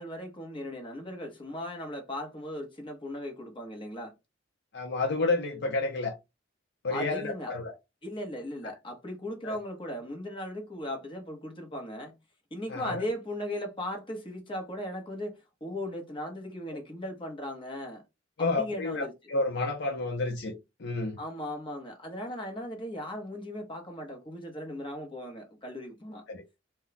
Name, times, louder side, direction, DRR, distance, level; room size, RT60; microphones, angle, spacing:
voice 1, 0.0-4.1 6.9-7.5 8.0-12.1 12.5-18.0 18.4-19.1 21.2-26.2, left 1 dB, 25° left, 0.9 m, -37 dB
voice 2, 4.7-6.2 6.8-7.7 9.4-9.6 12.7-13.0 18.4-20.5 20.8-21.2 26.3-26.4, left 3 dB, 60° left, 0.6 m, -30 dB
2.3 x 2.2 x 3.9 m
head